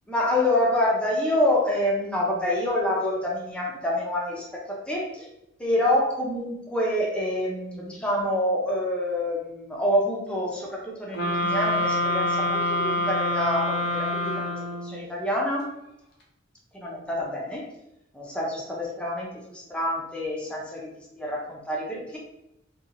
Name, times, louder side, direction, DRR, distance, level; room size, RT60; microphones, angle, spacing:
voice 1, 0.1-5.3 5.6-15.7 16.8-17.7 18.1-20.9 21.2-22.2, left 1 dB, 5° left, -3 dB, 0.6 m, -27 dB
sound 1, 11.1-15.0, left 1 dB, 60° left, 0.6 m, -26 dB
2.8 x 2.3 x 2.5 m, 0.86 s
head